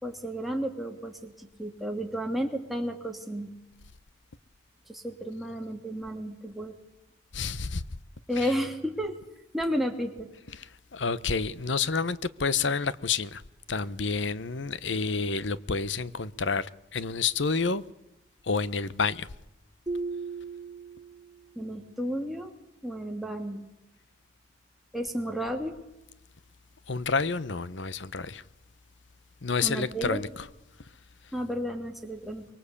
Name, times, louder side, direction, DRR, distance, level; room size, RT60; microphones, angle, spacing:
voice 1, 0.0-3.5 4.9-6.8 8.3-9.2 9.5-10.3 21.5-22.5 22.8-23.6 24.9-25.7 29.6-30.2 31.3-32.5, equal, ahead, 2.9 m, -32 dB
voice 2, 7.3-7.8 8.4-8.5 10.5-13.4 13.7-17.8 18.4-19.3 26.9-28.4 29.4-30.3, left 4 dB, 85° left, 1.0 m, -29 dB
sound 1, 19.9-21.6, right 3 dB, 25° right, 1.4 m, -36 dB
24.0 x 23.0 x 8.4 m
head